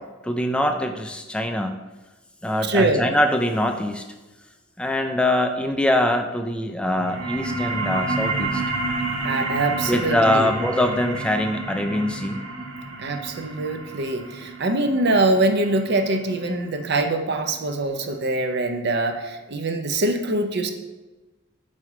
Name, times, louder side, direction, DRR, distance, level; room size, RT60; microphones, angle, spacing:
voice 1, 0.2-1.8 2.4-4.1 4.8-8.6 9.8-12.4, left 1 dB, 5° left, 6 dB, 0.3 m, -23 dB
voice 2, 2.6-3.0 9.2-10.5 13.0-20.7, right 2 dB, 60° right, 6 dB, 0.6 m, -23 dB
sound 1, 6.9-18.0, right 2 dB, 85° right, 1.0 m, -30 dB
4.7 x 4.1 x 4.9 m, 1.1 s
head